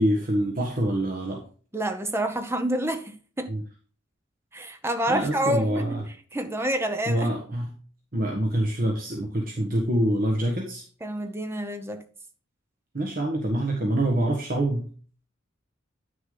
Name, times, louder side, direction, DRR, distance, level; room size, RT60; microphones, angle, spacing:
voice 1, 0.0-1.4 3.5-3.6 5.1-6.0 7.1-7.7 8.1-10.8 12.9-14.9, right 1 dB, 45° right, 1.4 m, -25 dB
voice 2, 1.7-3.5 4.5-5.8 6.3-7.3 11.0-12.0, right 1 dB, 15° right, 0.9 m, -28 dB
9.4 x 6.4 x 3.9 m
head